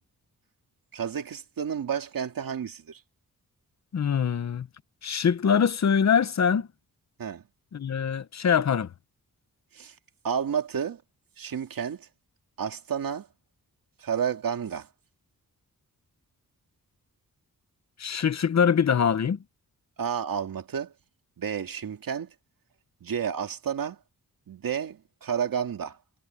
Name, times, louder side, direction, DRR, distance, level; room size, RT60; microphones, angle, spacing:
voice 1, 0.9-3.0 7.2-7.4 9.7-9.9 10.2-11.0 11.4-12.1 12.6-13.3 14.0-14.9 20.0-20.9 21.4-22.3 23.0-24.0 24.5-26.0, right 7 dB, 80° right, 2.4 m, -31 dB
voice 2, 3.9-4.7 5.0-6.7 7.7-8.9 18.0-19.4, left 7 dB, 50° left, 1.0 m, -23 dB
wide cardioid pair, 145°, 34 cm